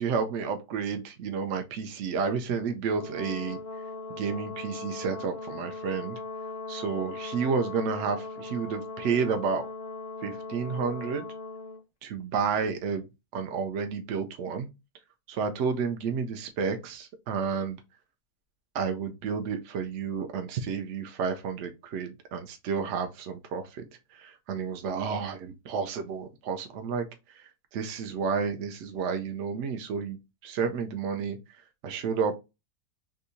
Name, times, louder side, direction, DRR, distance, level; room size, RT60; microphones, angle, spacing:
voice 1, 0.0-3.6 4.1-6.2 6.7-9.7 10.2-11.3 12.0-13.0 13.3-14.7 15.3-17.8 18.7-23.8 24.1-30.2 30.4-31.4 31.8-32.4, right 5 dB, 70° right, 6 dB, 0.7 m, -31 dB
Brass instrument, 2.9-11.8, left 3 dB, 45° left, 0.4 m, -39 dB
3.6 x 2.6 x 2.7 m, 0.25 s
omnidirectional pair, 1.7 m